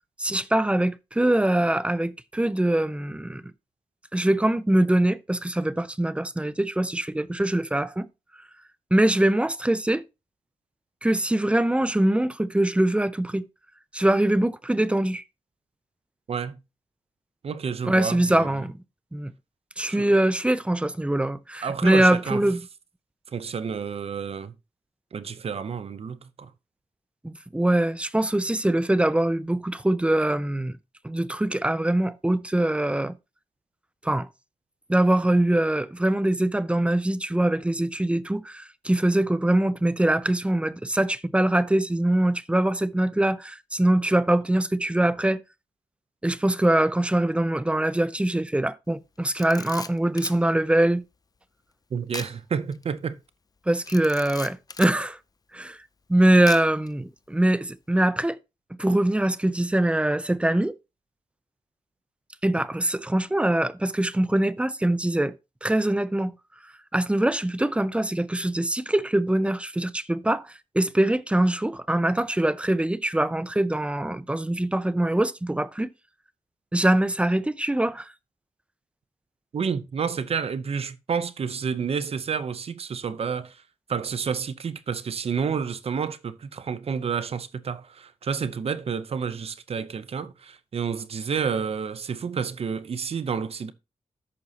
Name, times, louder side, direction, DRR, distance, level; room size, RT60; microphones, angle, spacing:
voice 1, 0.2-3.4 4.1-8.1 8.9-10.0 11.0-13.4 13.9-15.2 17.8-18.8 19.1-19.3 19.8-22.6 27.2-30.8 31.0-33.2 34.0-34.3 34.9-45.4 46.2-51.0 53.7-55.2 55.5-55.8 56.1-58.4 58.8-60.8 62.4-66.3 66.9-75.9 76.7-78.1, right 1 dB, 10° right, 0.6 m, -23 dB
voice 2, 16.3-16.6 17.4-18.6 19.9-20.1 21.6-22.4 23.3-24.5 25.1-26.5 51.9-53.2 79.5-83.6 83.9-93.7, right 6 dB, 60° right, 0.7 m, -30 dB
Camera, 49.2-50.4 52.1-52.4 52.7-52.8 53.8-55.0 56.5-56.9, left 4 dB, 35° left, 0.5 m, -38 dB
13.5 x 5.4 x 2.8 m
wide cardioid pair, 90°, 12 cm